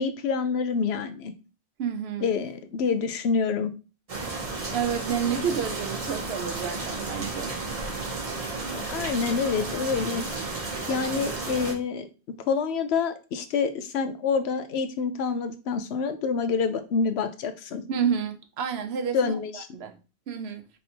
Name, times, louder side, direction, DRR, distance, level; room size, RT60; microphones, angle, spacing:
voice 1, 0.0-1.3 2.2-3.7 8.7-10.5 10.9-12.1 12.4-17.8 19.1-19.7, left 5 dB, 80° left, 0.9 m, -27 dB
voice 2, 1.8-2.3 4.7-7.6 17.9-20.0 20.3-20.6, right 7 dB, 75° right, 0.9 m, -30 dB
sound 1, 4.1-11.7, right 3 dB, 35° right, 0.9 m, -33 dB
3.4 x 2.6 x 4.3 m
omnidirectional pair, 1.1 m